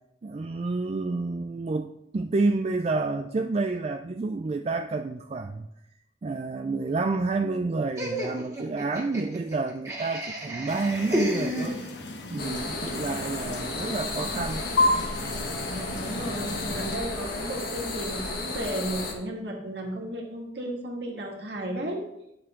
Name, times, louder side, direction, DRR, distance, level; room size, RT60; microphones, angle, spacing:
voice 1, 0.2-5.7 6.2-11.8 12.3-14.6, right 3 dB, 35° right, 6 dB, 0.3 m, -29 dB
Laughter, 8.0-12.2, equal, 20° right, 1.9 m, -32 dB
sound 1, 10.7-17.0, left 2 dB, 75° left, 1.1 m, -32 dB
sound 2, 12.4-19.1, left 2 dB, 55° left, 1.7 m, -33 dB
voice 2, 12.9-13.2 15.7-22.0, right 1 dB, 65° right, -1 dB, 2.1 m, -34 dB
10.5 x 6.9 x 3.7 m, 0.82 s
head